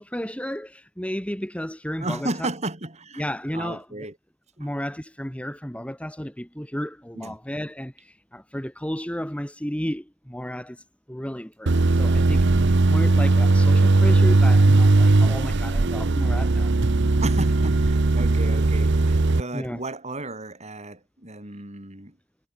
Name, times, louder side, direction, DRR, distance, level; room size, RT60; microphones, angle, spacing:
voice 1, 0.0-2.3 3.2-4.1 4.6-10.8 11.1-16.8 19.5-19.8, equal, 5° left, 2.4 m, -33 dB
voice 2, 2.0-3.3 3.5-4.1 4.6-4.7 7.1-7.4 17.2-22.2, right 2 dB, 35° right, 5.9 m, -33 dB
sound 1, 11.7-19.4, right 2 dB, 60° right, 0.8 m, -18 dB
head